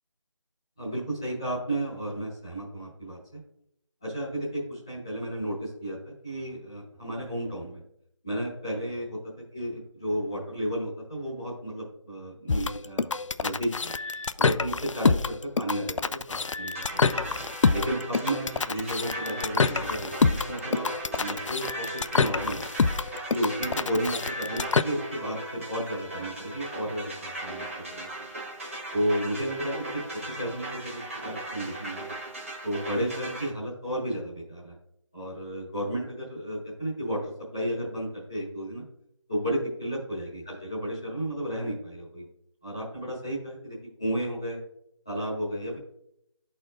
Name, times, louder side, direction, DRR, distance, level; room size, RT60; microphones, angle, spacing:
voice 1, 0.8-3.4 4.0-7.8 8.2-9.2 9.5-13.1 13.4-13.9 14.4-17.1 17.7-20.9 21.2-22.6 23.3-28.1 28.9-32.0 32.6-34.8 35.1-38.8 39.3-42.2 42.6-44.6 45.0-45.8, equal, 10° left, -10 dB, 0.9 m, -33 dB
sound 1, 12.5-24.8, left 4 dB, 75° left, 0.4 m, -26 dB
sound 2, 16.7-33.5, right 2 dB, 25° right, 1.1 m, -38 dB
11.0 x 4.3 x 2.4 m, 0.75 s
figure-of-eight pair, 180°, 16 cm